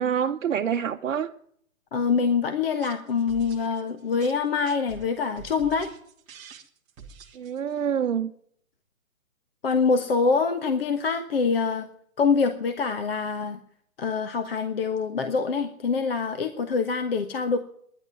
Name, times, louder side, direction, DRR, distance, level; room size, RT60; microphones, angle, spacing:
voice 1, 0.0-1.3 7.3-8.3, right 8 dB, 65° right, 0.9 m, -26 dB
voice 2, 1.9-5.9 9.6-11.9 12.2-13.6 14.0-17.6, left 5 dB, 45° left, 1.3 m, -25 dB
sound 1, 2.6-7.8, right 6 dB, 10° right, 1.1 m, -47 dB
11.5 x 10.5 x 9.5 m
hypercardioid pair, 160°, 41 cm